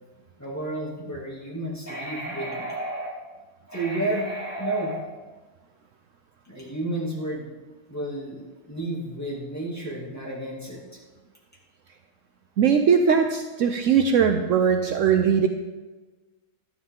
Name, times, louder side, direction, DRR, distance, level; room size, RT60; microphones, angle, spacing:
voice 1, 0.4-3.2 3.7-5.0 6.4-7.5 7.9-11.0, right 1 dB, 10° left, -5 dB, 2.6 m, -31 dB
voice 2, 12.6-15.5, right 7 dB, 65° right, 5 dB, 1.0 m, -20 dB
12.0 x 10.5 x 3.8 m, 1.2 s
omnidirectional pair, 1.5 m